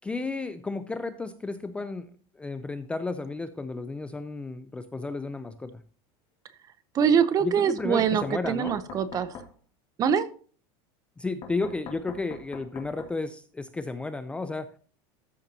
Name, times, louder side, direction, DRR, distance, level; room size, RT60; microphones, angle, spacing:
voice 1, 0.0-2.1 2.3-5.8 7.4-8.8 11.2-14.7, left 3 dB, 10° left, 11 dB, 0.4 m, -33 dB
voice 2, 6.9-9.3 10.0-10.3, right 7 dB, 30° right, 14 dB, 0.7 m, -24 dB
Knock, 7.8-9.5 11.4-13.1, left 5 dB, 40° left, 1.8 m, -42 dB
13.5 x 7.0 x 2.8 m, 0.42 s
supercardioid pair, 155°, 13 cm